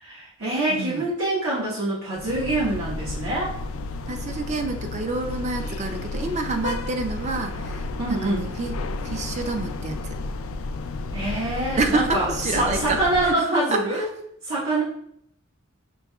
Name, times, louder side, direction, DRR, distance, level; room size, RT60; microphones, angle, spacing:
voice 1, 0.0-3.5 8.0-8.5 11.1-14.1 14.4-14.8, right 2 dB, 75° right, -9 dB, 1.2 m, -25 dB
voice 2, 0.7-1.1 4.1-8.7 9.0-10.2 11.8-14.1, right 2 dB, 35° right, 5 dB, 0.4 m, -28 dB
sound 1, 2.2-13.4, left 2 dB, 70° left, 0.3 m, -32 dB
6.1 x 2.8 x 2.3 m, 0.71 s
head